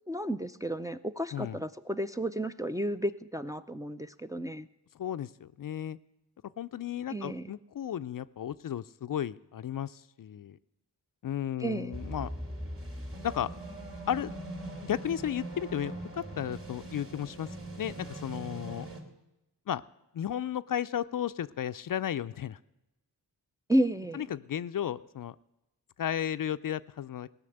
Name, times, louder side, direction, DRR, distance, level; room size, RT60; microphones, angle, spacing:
voice 1, 0.1-4.7 7.1-7.5 11.6-12.0 23.7-24.2, right 1 dB, 10° right, 7 dB, 0.4 m, -32 dB
voice 2, 5.0-6.0 6.6-10.6 11.2-12.3 13.2-13.5 14.1-14.3 14.8-17.5 17.8-18.9 19.7-19.8 20.1-22.6 24.1-25.4 26.0-27.3, left 10 dB, 50° left, 15 dB, 0.4 m, -34 dB
sound 1, 11.9-19.0, right 1 dB, 30° right, 2.8 m, -41 dB
16.5 x 6.0 x 7.8 m, 0.92 s
cardioid pair, 60°, 42 cm